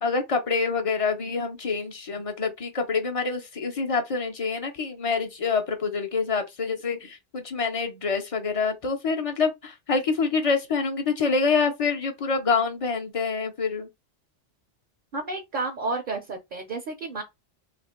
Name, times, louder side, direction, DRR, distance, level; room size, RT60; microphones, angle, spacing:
voice 1, 0.0-13.9, left 4 dB, 40° left, 0.6 m, -26 dB
voice 2, 15.1-17.2, right 3 dB, 50° right, 0.7 m, -31 dB
2.8 x 2.5 x 4.2 m
omnidirectional pair, 1.2 m